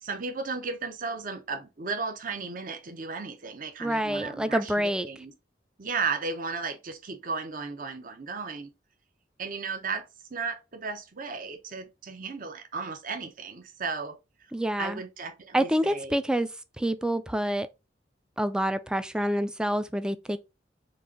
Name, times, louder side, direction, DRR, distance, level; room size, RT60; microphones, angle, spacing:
voice 1, 0.0-5.3 5.8-8.7 9.4-14.2 14.8-16.2, right 4 dB, 50° right, 0.8 m, -35 dB
voice 2, 3.8-5.1 14.5-15.0 15.5-16.5 16.8-17.7 18.4-20.4, right 1 dB, 5° right, 0.3 m, -27 dB
5.3 x 2.5 x 3.7 m
head